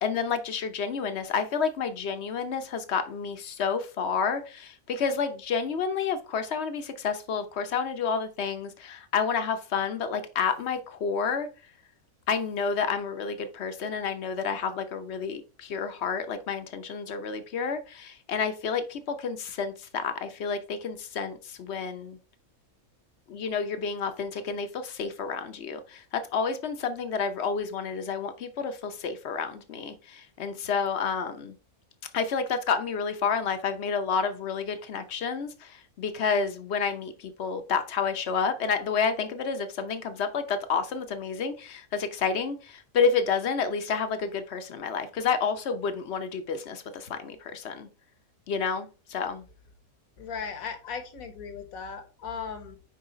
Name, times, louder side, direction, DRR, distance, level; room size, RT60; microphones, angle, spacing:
voice 1, 0.0-11.5 12.3-22.2 23.3-31.5 32.1-47.9 48.5-49.4, left 5 dB, 55° left, 1.0 m, -30 dB
voice 2, 50.2-52.8, left 6 dB, 70° left, 1.5 m, -37 dB
5.6 x 4.9 x 3.8 m
omnidirectional pair, 1.5 m